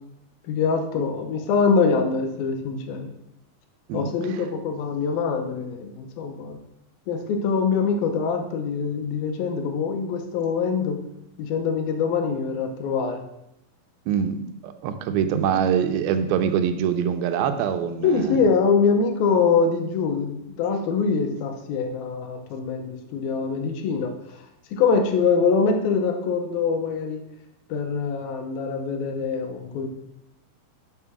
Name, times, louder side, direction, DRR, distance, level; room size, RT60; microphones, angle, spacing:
voice 1, 0.4-3.1 3.9-6.6 7.1-11.0 11.4-13.2 18.0-24.1 24.7-27.2 27.7-29.9, left 5 dB, 80° left, 5 dB, 2.7 m, -24 dB
voice 2, 14.1-18.4, right 8 dB, 80° right, 9 dB, 2.6 m, -24 dB
7.2 x 6.5 x 5.9 m, 0.84 s
omnidirectional pair, 4.3 m